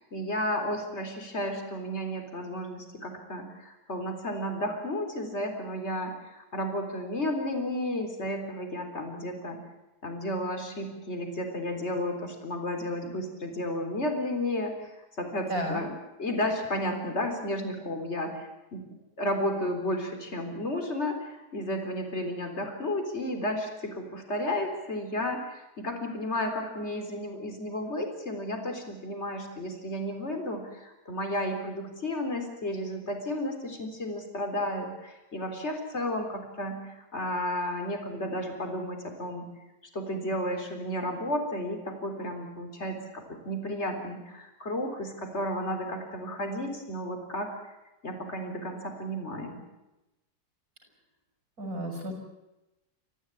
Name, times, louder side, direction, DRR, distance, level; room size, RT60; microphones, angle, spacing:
voice 1, 0.0-9.6 10.0-14.9 15.2-15.9 16.2-18.8 19.2-39.5 39.9-47.7 48.0-49.6, left 1 dB, 40° left, 5 dB, 4.1 m, -33 dB
voice 2, 15.5-15.8 51.6-52.1, equal, 55° right, 3 dB, 6.8 m, -32 dB
29.0 x 14.5 x 9.7 m, 0.98 s
omnidirectional pair, 1.8 m